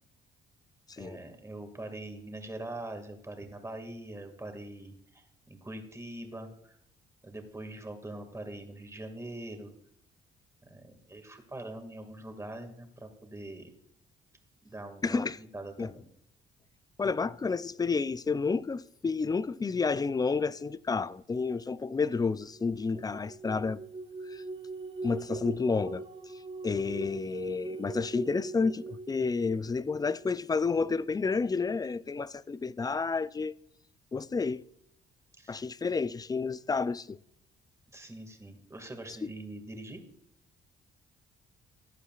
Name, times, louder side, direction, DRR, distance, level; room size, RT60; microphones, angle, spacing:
voice 1, 1.0-6.8 7.2-9.7 10.7-13.7 14.6-16.1 35.4-35.6 36.0-36.2 37.9-40.0, right 1 dB, 15° right, 2.0 m, -43 dB
voice 2, 15.0-15.4 15.8-15.9 17.0-23.8 24.3-24.4 25.0-26.0 26.6-33.5 34.1-34.6 35.5-37.2 39.2-39.3, left 4 dB, 20° left, 0.4 m, -30 dB
sound 1, 22.5-30.3, right 3 dB, 30° right, 1.1 m, -41 dB
15.0 x 9.9 x 2.4 m
cardioid pair, 90°, 20 cm